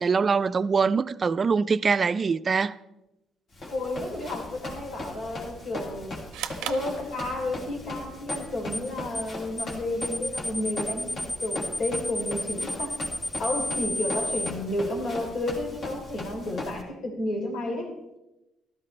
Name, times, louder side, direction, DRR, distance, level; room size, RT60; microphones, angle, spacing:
voice 1, 0.0-2.7, right 5 dB, 40° right, 0.4 m, -23 dB
Run, 3.5-16.8, left 1 dB, 50° left, 2.5 m, -39 dB
voice 2, 3.7-6.2 6.6-13.0 13.4-17.9, left 1 dB, 70° left, 3.3 m, -31 dB
sound 1, 6.3-7.7, right 10 dB, 90° right, 0.6 m, -37 dB
sound 2, 8.3-8.5 8.7-8.9 9.1-9.3 9.6-9.7 10.0-14.5, left 1 dB, 30° left, 1.1 m, -31 dB
14.0 x 12.5 x 3.2 m
cardioid pair, 95°, 0 cm